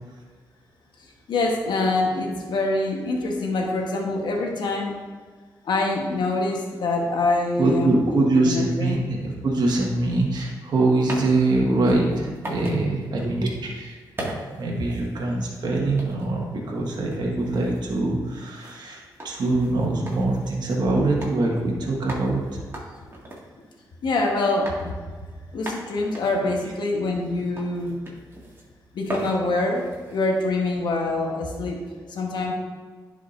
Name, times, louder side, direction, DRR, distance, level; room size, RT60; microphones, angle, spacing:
voice 1, 1.3-5.0 5.6-9.0 24.0-25.0 25.5-28.0 28.9-31.8 32.1-32.5, left 2 dB, 75° left, 1 dB, 1.2 m, -25 dB
voice 2, 7.6-14.0 14.5-22.6, right 2 dB, 70° right, -2 dB, 1.6 m, -23 dB
sound 1, 10.8-12.9 13.2-13.4 14.2-15.5 16.0-16.4 16.9-20.7 21.2-21.3 21.6-21.7 22.1-24.2 24.7-24.9 25.3-25.4 25.7-27.3 27.6-28.7 29.0-30.4, right 1 dB, 30° right, 2.0 m, -38 dB
10.5 x 5.1 x 2.6 m, 1.5 s
cardioid pair, 70°, 8 cm